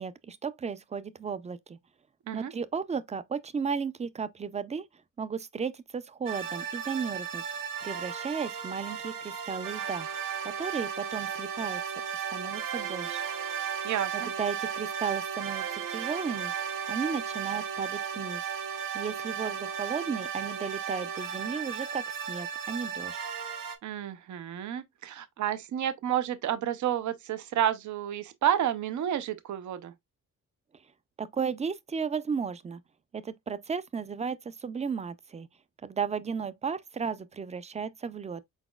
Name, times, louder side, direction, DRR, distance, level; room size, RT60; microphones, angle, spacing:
voice 1, 0.0-1.8 2.3-4.9 5.2-7.4 7.8-10.1 10.4-11.8 12.3-13.2 14.1-16.5 16.9-18.4 18.9-23.2 31.2-32.8 33.1-35.5 35.8-38.4, right 6 dB, 20° right, 0.3 m, -34 dB
sound 1, 6.3-23.8, right 7 dB, 85° right, 1.0 m, -35 dB
voice 2, 13.8-14.3 23.8-29.9, right 10 dB, 65° right, 0.6 m, -30 dB
4.9 x 4.1 x 2.3 m
wide cardioid pair, 155°, 32 cm